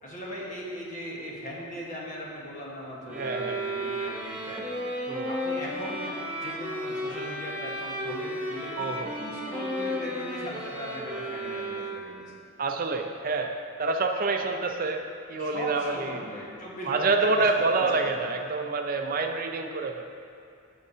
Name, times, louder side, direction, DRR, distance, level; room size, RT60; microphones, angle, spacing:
voice 1, 0.0-4.7 5.2-12.3 15.4-18.1, equal, 35° left, -4 dB, 1.4 m, -39 dB
sound 1, 3.1-12.3, equal, 5° right, 0.7 m, -34 dB
voice 2, 3.1-3.6 5.1-5.3 8.8-9.1 12.6-16.2 16.9-20.0, right 3 dB, 40° right, 4 dB, 0.5 m, -27 dB
10.5 x 6.5 x 2.8 m, 2.6 s
head